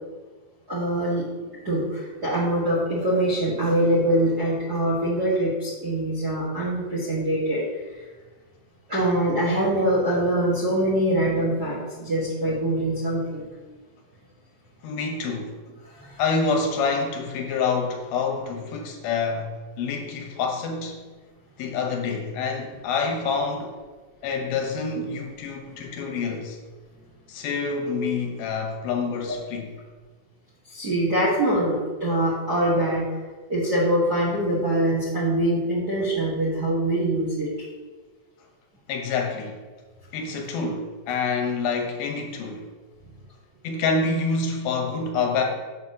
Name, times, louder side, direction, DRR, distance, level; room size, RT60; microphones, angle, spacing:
voice 1, 0.7-1.3 1.6-7.6 7.9-8.0 8.9-13.4 15.8-16.2 25.7-25.8 30.7-33.1 33.5-37.5, right 1 dB, 45° right, -8 dB, 1.4 m, -24 dB
voice 2, 14.8-15.5 16.2-19.5 19.8-21.0 21.6-23.7 24.2-26.6 27.3-29.7 38.9-39.6 40.1-42.7 43.6-45.4, left 4 dB, 80° left, 2 dB, 2.7 m, -27 dB
7.1 x 4.3 x 6.2 m, 1.3 s
omnidirectional pair, 4.4 m